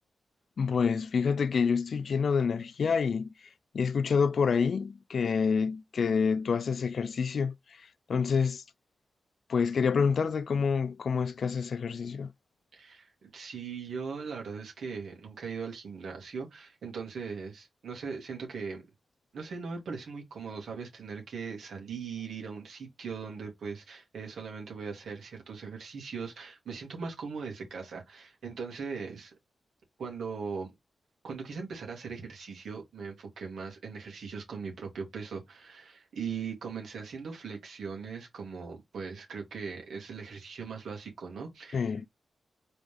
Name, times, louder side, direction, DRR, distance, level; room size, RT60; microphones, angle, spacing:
voice 1, 0.6-3.3 3.7-7.5 8.1-8.6 9.5-12.3 41.7-42.1, left 6 dB, 70° left, 0.4 m, -27 dB
voice 2, 12.7-18.9 19.3-29.3 30.0-30.7 31.2-42.1, right 5 dB, 85° right, 2.3 m, -39 dB
4.0 x 3.6 x 3.5 m
cardioid pair, 75°, 0 cm